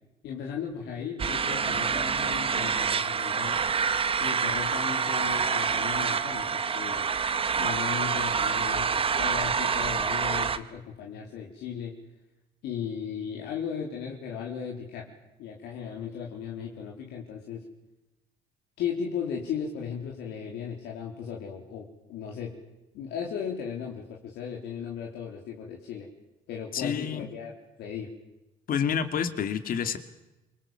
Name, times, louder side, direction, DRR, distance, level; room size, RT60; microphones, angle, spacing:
voice 1, 0.2-3.6 4.2-7.1 7.6-11.9 12.6-15.1 15.4-17.6 18.8-22.5 22.9-26.1 26.5-27.5 27.8-28.1, left 7 dB, 80° left, -1 dB, 4.3 m, -36 dB
sound 1, 1.2-10.6, right 6 dB, 35° right, 1.6 m, -27 dB
voice 2, 26.7-27.3 28.7-30.0, left 7 dB, 55° left, 9 dB, 2.7 m, -28 dB
28.0 x 24.0 x 7.8 m, 1.0 s
cardioid pair, 110°, 17 cm